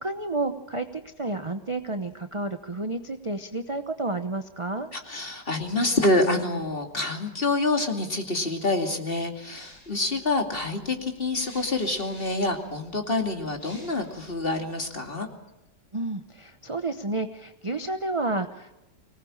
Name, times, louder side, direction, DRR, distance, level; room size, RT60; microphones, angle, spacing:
voice 1, 0.0-4.9 15.9-18.8, right 2 dB, 25° right, 8 dB, 0.8 m, -31 dB
voice 2, 4.9-15.3, left 2 dB, 35° left, 4 dB, 2.7 m, -27 dB
sound 1, 9.5-15.1, left 1 dB, 65° left, 7.0 m, -52 dB
24.5 x 19.0 x 8.7 m, 0.93 s
omnidirectional pair, 1.8 m